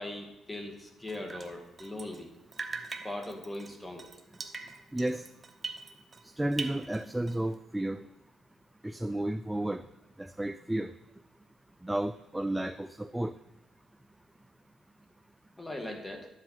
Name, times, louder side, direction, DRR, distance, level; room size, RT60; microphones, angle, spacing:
voice 1, 0.0-2.3 3.0-4.2 15.6-16.3, left 1 dB, 15° left, 4 dB, 1.7 m, -40 dB
Drip, 1.1-2.3 2.5-6.3 6.5-7.5, right 4 dB, 30° right, 0.8 m, -42 dB
voice 2, 4.9-5.2 6.2-8.1 8.8-9.8 10.2-10.9 11.8-13.3, right 1 dB, 10° right, 10 dB, 0.3 m, -32 dB
11.0 x 7.4 x 3.9 m, 0.96 s
cardioid pair, 90°, 0 cm